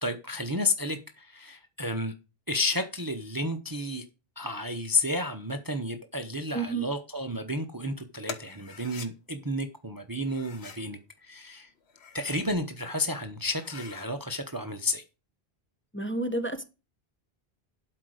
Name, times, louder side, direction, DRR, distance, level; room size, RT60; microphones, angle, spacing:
voice 1, 0.0-2.1 2.5-4.0 4.4-11.7 12.1-15.0, left 2 dB, 20° right, 0.8 m, -31 dB
voice 2, 6.5-6.9 15.9-16.6, right 3 dB, 10° left, 1.0 m, -30 dB
sound 1, 8.2-9.1 10.2-10.9 11.8-12.6 13.0-13.1 13.5-14.1, left 5 dB, 85° left, 1.4 m, -44 dB
12.0 x 5.0 x 6.4 m
omnidirectional pair, 1.1 m